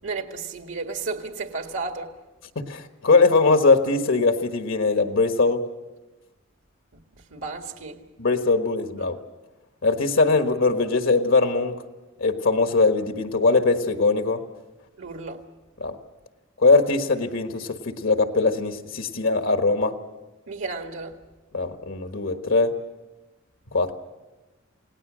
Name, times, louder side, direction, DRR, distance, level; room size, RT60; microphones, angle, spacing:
voice 1, 0.0-2.1 7.3-8.0 15.0-15.4 20.5-21.1, right 4 dB, 75° right, 1.8 m, -32 dB
voice 2, 2.5-5.6 8.2-9.2 9.8-11.7 12.2-14.4 15.8-15.9 16.6-20.0 21.5-22.7 23.7-23.9, left 3 dB, 75° left, 1.4 m, -21 dB
29.0 x 18.0 x 6.3 m
head